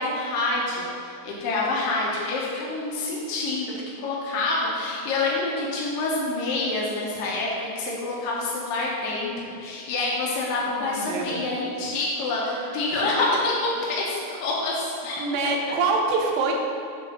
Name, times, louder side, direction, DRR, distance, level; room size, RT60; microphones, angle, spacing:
voice 1, 0.0-3.7 4.0-15.2, left 2 dB, 80° left, -4 dB, 2.0 m, -27 dB
voice 2, 10.7-11.4 12.9-13.0 15.2-16.5, right 3 dB, 85° right, 0 dB, 3.2 m, -25 dB
8.8 x 4.0 x 6.1 m, 2.4 s
omnidirectional pair, 5.4 m